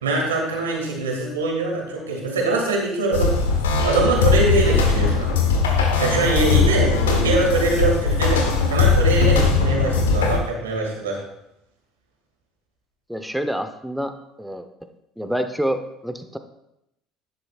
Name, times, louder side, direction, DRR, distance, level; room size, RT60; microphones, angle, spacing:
voice 1, 0.0-3.4 3.8-5.4 6.0-8.4 8.7-11.2, right 3 dB, 85° right, 0 dB, 2.3 m, -23 dB
sound 1, 3.1-10.4, left 4 dB, 85° left, 1.2 m, -19 dB
voice 2, 13.1-14.7 15.2-16.4, equal, ahead, 7 dB, 0.9 m, -27 dB
11.0 x 10.0 x 2.4 m, 0.84 s
hypercardioid pair, 65°, 0 cm